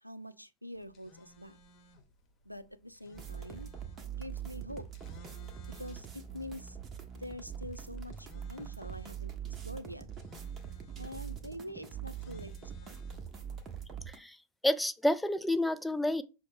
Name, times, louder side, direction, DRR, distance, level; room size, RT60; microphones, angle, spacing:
voice 1, 0.0-1.6 2.5-3.7 4.1-4.9 5.8-6.8 7.1-9.3 9.6-10.1 11.0-12.9, left 1 dB, 90° right, 0.3 m, -45 dB
sound 1, 0.8-13.7, left 1 dB, 35° left, 0.9 m, -59 dB
sound 2, 3.1-14.2, right 8 dB, 25° right, 0.7 m, -43 dB
voice 2, 14.1-14.4 14.6-16.2, left 1 dB, 5° left, 0.3 m, -29 dB
5.9 x 2.1 x 3.5 m
figure-of-eight pair, 90°, 0 cm